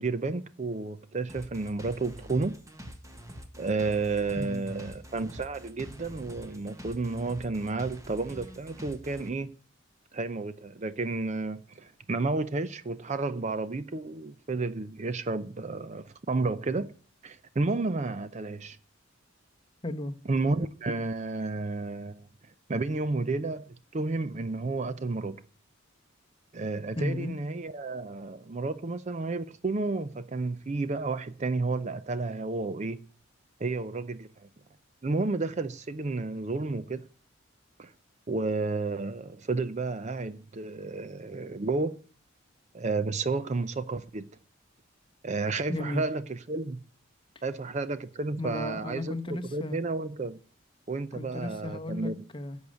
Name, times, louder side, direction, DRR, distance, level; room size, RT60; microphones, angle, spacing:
voice 1, 0.0-2.6 3.6-9.5 10.1-16.9 17.2-18.8 20.3-22.3 22.7-23.6 23.9-25.4 26.5-33.0 33.6-34.3 35.0-37.0 37.8-37.9 38.3-42.0 42.7-44.3 45.2-46.8 47.4-49.1 49.5-50.4 50.9-52.2, right 3 dB, 35° right, 0.5 m, -31 dB
sound 1, 1.3-9.3, equal, 15° right, 1.3 m, -45 dB
voice 2, 4.3-4.8 19.8-20.2 26.9-27.3 45.7-46.1 48.4-49.8 51.1-52.6, left 1 dB, 25° left, 0.9 m, -34 dB
10.5 x 6.4 x 8.4 m
head